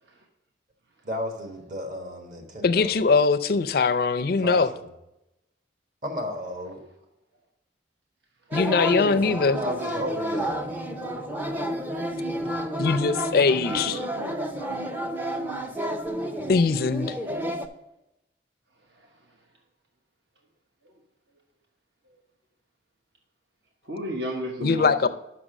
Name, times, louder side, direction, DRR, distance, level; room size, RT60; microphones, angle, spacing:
voice 1, 1.0-2.9 4.4-4.8 6.0-6.8 9.6-10.7, equal, 45° right, 3 dB, 1.3 m, -33 dB
voice 2, 2.6-4.7 8.5-9.6 12.8-14.0 16.5-17.1 24.6-25.1, left 4 dB, 55° left, 10 dB, 0.4 m, -21 dB
sound 1, 8.5-17.7, equal, 10° right, 0.5 m, -30 dB
voice 3, 13.7-14.8 18.9-19.1 20.8-20.9 23.8-25.1, right 1 dB, 65° right, 2 dB, 1.0 m, -34 dB
6.0 x 5.9 x 6.4 m, 0.89 s
head